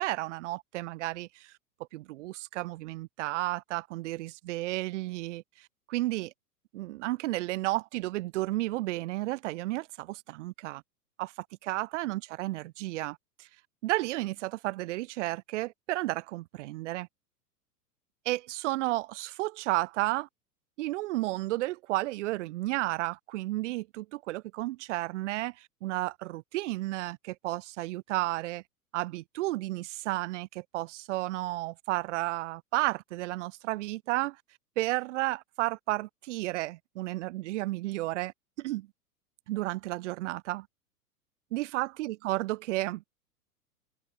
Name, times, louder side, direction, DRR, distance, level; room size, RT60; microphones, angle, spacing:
voice 1, 0.0-1.5 1.9-5.4 5.9-6.3 6.7-10.8 11.2-11.3 11.6-13.2 13.8-17.1 18.2-20.3 20.8-25.5 25.8-28.6 28.9-34.4 34.8-38.3 38.6-38.9 39.5-40.7 41.5-43.0, right 18 dB, 50° right, 1.1 m, -32 dB
figure-of-eight pair, 100°, 47 cm